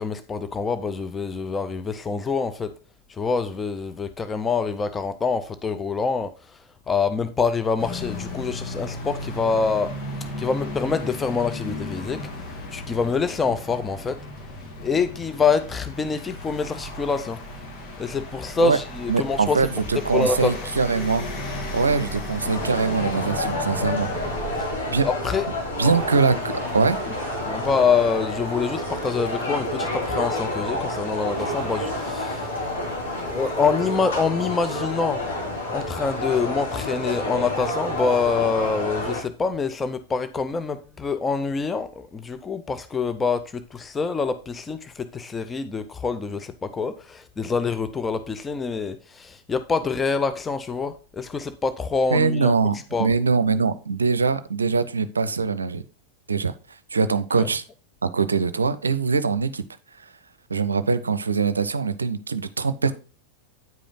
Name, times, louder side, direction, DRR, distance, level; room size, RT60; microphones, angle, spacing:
voice 1, 0.0-2.7 3.1-10.0 10.4-12.3 12.7-14.2 14.8-17.4 18.0-19.7 20.1-20.7 24.6-24.7 25.0-25.5 27.4-32.6 33.2-35.3 35.7-52.6 52.9-53.1 57.4-57.5, left 5 dB, 15° left, 0.5 m, -26 dB
sound 1, 7.8-24.6, left 1 dB, 40° left, 2.1 m, -35 dB
voice 2, 19.1-21.3 21.7-24.1 24.9-25.1 25.8-27.0 52.1-55.8 56.3-56.5 56.9-57.6 58.0-59.6 60.5-62.9, right 4 dB, 75° right, 0.5 m, -22 dB
sound 2, 22.4-39.2, left 1 dB, 65° left, 2.7 m, -29 dB
sound 3, 25.9-34.0, right 6 dB, 25° right, 1.3 m, -41 dB
9.3 x 5.0 x 3.7 m
figure-of-eight pair, 90°, 0 cm